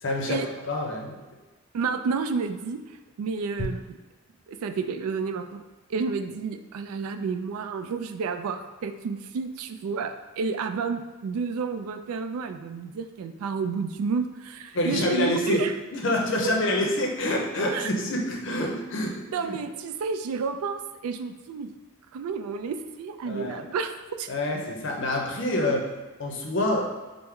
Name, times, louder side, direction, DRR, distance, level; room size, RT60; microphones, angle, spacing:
voice 1, 0.0-1.2 14.7-15.6 15.9-19.6 23.2-23.6 24.3-25.9 26.2-26.9, left 1 dB, 55° left, 1 dB, 0.6 m, -27 dB
voice 2, 1.7-2.8 3.2-4.0 4.5-5.6 5.9-15.7 16.4-16.5 17.7-17.9 19.3-21.7 22.1-23.9 24.2-24.3, right 5 dB, 80° right, 9 dB, 0.3 m, -30 dB
4.4 x 2.0 x 3.6 m, 1.2 s
head